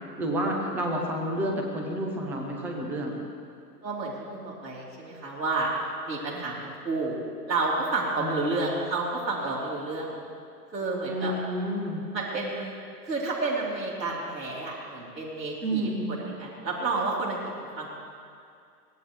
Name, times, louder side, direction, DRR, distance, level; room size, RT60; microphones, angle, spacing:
voice 1, 0.2-3.2 8.2-8.7 11.1-12.0 15.6-16.1, right 1 dB, 5° right, 1 dB, 0.4 m, -30 dB
voice 2, 3.8-5.7 6.1-7.2 7.5-10.2 10.7-11.3 12.1-12.7 13.0-17.4 17.8-17.9, right 3 dB, 85° right, -5 dB, 3.9 m, -30 dB
23.5 x 17.0 x 3.3 m, 2.3 s
hypercardioid pair, 115°, 49 cm